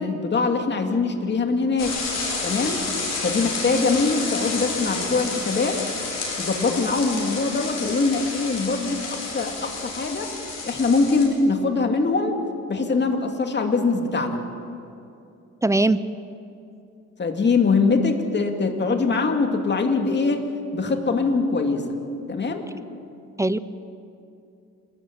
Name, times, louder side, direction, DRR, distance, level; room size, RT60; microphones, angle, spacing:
voice 1, 0.0-2.0 2.4-2.9 3.2-5.8 6.4-10.3 10.6-12.4 12.7-14.4 17.2-20.5 20.7-21.9 22.3-22.7, left 4 dB, 35° left, 4 dB, 2.5 m, -23 dB
sound 1, 1.8-11.3, left 3 dB, 55° left, 6.3 m, -30 dB
voice 2, 15.6-16.0 23.4-23.6, right 2 dB, 10° right, 15 dB, 0.7 m, -19 dB
28.0 x 13.5 x 8.9 m, 2.6 s
cardioid pair, 90°, 30 cm